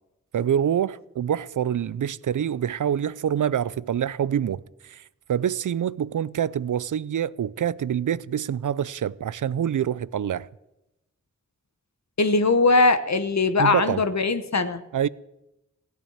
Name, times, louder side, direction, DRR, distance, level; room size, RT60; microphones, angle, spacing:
voice 1, 0.3-5.0 5.3-10.5 13.6-14.0 14.9-15.1, right 9 dB, 85° right, 0.5 m, -26 dB
voice 2, 12.2-14.8, left 3 dB, 65° left, 1.1 m, -20 dB
16.5 x 9.1 x 8.6 m
wide cardioid pair, 60°, 30 cm